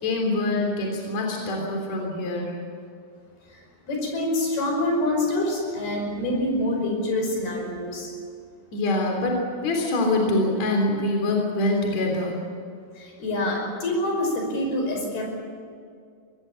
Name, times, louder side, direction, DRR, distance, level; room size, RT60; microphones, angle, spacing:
voice 1, 0.0-2.6 8.7-12.4, left 2 dB, 45° left, 1 dB, 4.5 m, -24 dB
voice 2, 3.9-8.1 13.0-15.3, left 1 dB, 70° left, 1 dB, 7.3 m, -26 dB
24.0 x 18.5 x 8.5 m, 2.2 s
omnidirectional pair, 4.6 m